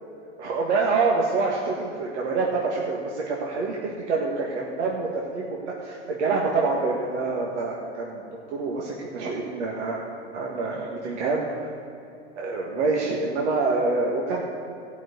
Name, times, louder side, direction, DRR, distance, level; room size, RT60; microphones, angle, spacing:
voice 1, 0.4-10.0 10.3-11.7 12.4-14.4, right 3 dB, 75° right, -2 dB, 1.9 m, -26 dB
14.5 x 6.1 x 8.1 m, 2.8 s
hypercardioid pair, 120°, 35 cm